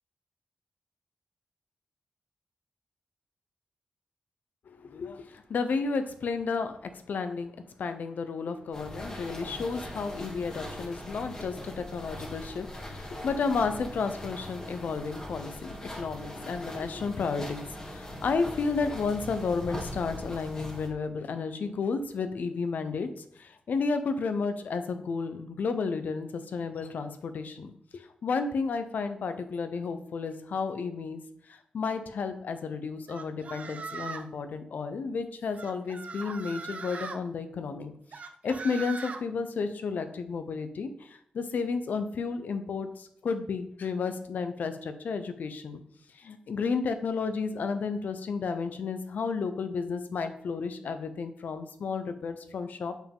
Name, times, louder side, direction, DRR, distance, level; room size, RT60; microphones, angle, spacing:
voice 1, 4.7-7.5 7.8-31.2 31.5-37.9 38.4-45.8 46.1-52.9, left 4 dB, 75° left, 9 dB, 0.7 m, -32 dB
sound 1, 8.7-20.9, left 1 dB, 25° left, 1.9 m, -41 dB
sound 2, 33.1-34.3 35.5-37.2 38.1-39.2, right 5 dB, 50° right, 0.6 m, -39 dB
7.3 x 5.6 x 3.6 m, 0.66 s
wide cardioid pair, 120°, 3 cm